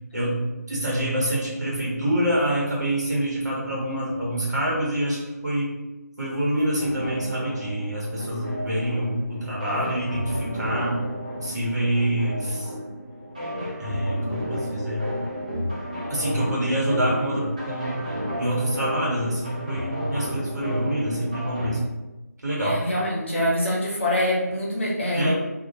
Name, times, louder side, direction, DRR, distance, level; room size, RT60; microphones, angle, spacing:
voice 1, 0.1-5.8 6.2-11.0 11.4-12.7 13.8-15.1 16.1-18.1 18.4-21.8 22.4-22.8 25.1-25.3, right 1 dB, 80° right, -5 dB, 1.0 m, -26 dB
sound 1, 6.8-21.8, equal, 25° right, 0.4 m, -31 dB
voice 2, 22.6-25.3, left 1 dB, 45° left, -5 dB, 0.8 m, -24 dB
2.2 x 2.0 x 2.7 m, 1.1 s
figure-of-eight pair, 170°, 9 cm